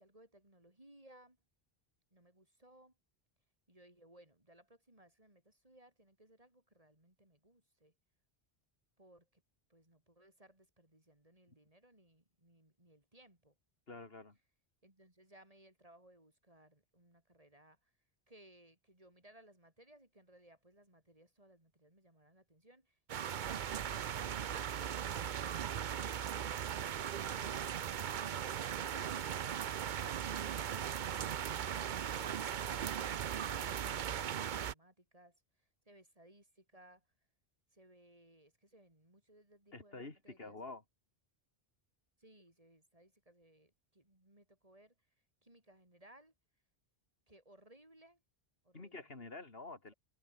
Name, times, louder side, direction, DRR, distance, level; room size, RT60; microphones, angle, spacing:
voice 1, 0.0-1.4 2.1-2.9 3.7-7.9 9.0-9.4 9.7-13.5 14.8-17.9 18.3-26.5 30.4-37.1 37.7-40.6 42.2-44.9 45.4-46.3 47.3-48.2 48.6-49.1, right 1 dB, 35° right, 4.8 m, -63 dB
voice 2, 13.9-14.4 39.7-40.8 48.7-49.9, left 3 dB, 70° left, 3.0 m, -48 dB
sound 1, 23.1-34.7, right 9 dB, 55° right, 0.7 m, -38 dB
omnidirectional pair, 1.0 m